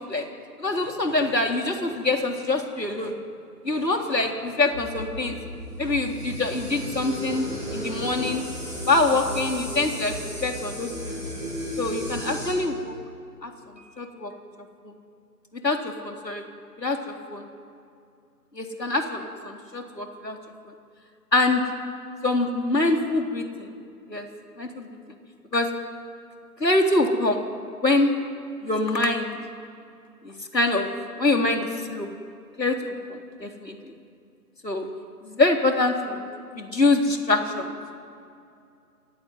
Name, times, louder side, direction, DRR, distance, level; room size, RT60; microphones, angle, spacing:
voice 1, 0.6-3.1 3.6-5.4 5.8-7.5 7.7-8.4 8.9-10.1 10.4-11.2 11.8-12.9 13.4-13.5 14.0-14.3 14.8-14.9 15.6-16.4 16.8-17.4 18.5-20.4 21.3-21.6 22.2-23.7 24.1-24.3 24.6-24.9 25.5-25.7 26.6-27.4 27.8-28.1 28.6-29.4 30.2-30.9 31.2-32.1 32.6-33.9 34.6-34.9 35.2-36.2 36.6-37.7, left 2 dB, 85° left, 3 dB, 3.9 m, -24 dB
sound 1, 4.7-12.5, equal, ahead, 3.3 m, -34 dB
27.0 x 16.5 x 9.6 m, 2.5 s
figure-of-eight pair, 175°, 49 cm